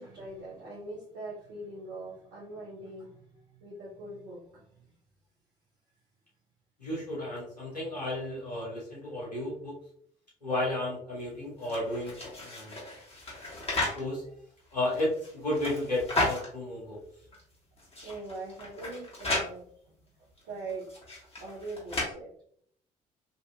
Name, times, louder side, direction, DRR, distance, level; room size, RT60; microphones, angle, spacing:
voice 1, 0.0-4.9 18.0-21.0 21.4-22.3, right 2 dB, 60° right, -6 dB, 0.8 m, -42 dB
voice 2, 6.8-9.8 10.4-12.1 12.4-12.8 14.0-14.3 14.7-17.0, left 1 dB, 85° left, -6 dB, 1.0 m, -33 dB
sound 1, 11.6-14.0 14.7-16.5 17.0-17.1 17.3-17.4 17.8-19.5 20.4-22.0, left 2 dB, 30° left, 1.5 m, -34 dB
3.9 x 2.6 x 2.2 m, 0.63 s
figure-of-eight pair, 45°, 20 cm